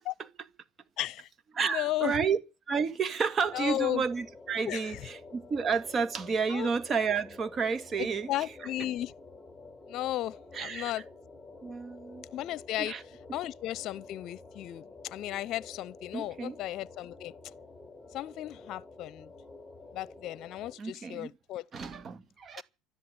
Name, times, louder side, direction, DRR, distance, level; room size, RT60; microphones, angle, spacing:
voice 1, 1.0-1.3 1.6-2.1 3.5-4.0 4.6-5.0 6.5-6.7 8.0-9.1 9.9-11.0 12.3-12.9 13.3-17.5 18.1-19.3 19.9-21.6 22.6-22.7, left 14 dB, 55° left, 0.8 m, -35 dB
voice 2, 1.5-2.4 2.7-8.3 10.5-10.9 11.6-12.3 12.8-13.0 16.1-16.6 20.8-21.3 21.7-22.6, right 5 dB, 35° right, 2.2 m, -31 dB
sound 1, 3.4-20.7, left 3 dB, 15° left, 4.9 m, -50 dB
13.0 x 10.5 x 9.7 m
supercardioid pair, 100°, 0 cm